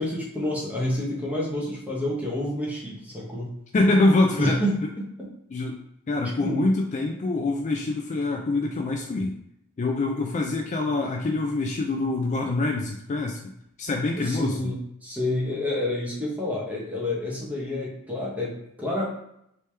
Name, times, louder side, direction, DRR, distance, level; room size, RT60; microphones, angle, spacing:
voice 1, 0.0-3.5 4.4-5.3 6.4-6.7 14.2-19.0, left 1 dB, 5° right, -5 dB, 0.9 m, -29 dB
voice 2, 3.7-4.6 5.5-5.8 6.1-9.3 9.8-13.4 13.8-14.7, left 2 dB, 35° left, 1 dB, 0.3 m, -25 dB
3.2 x 2.9 x 3.3 m, 0.76 s
head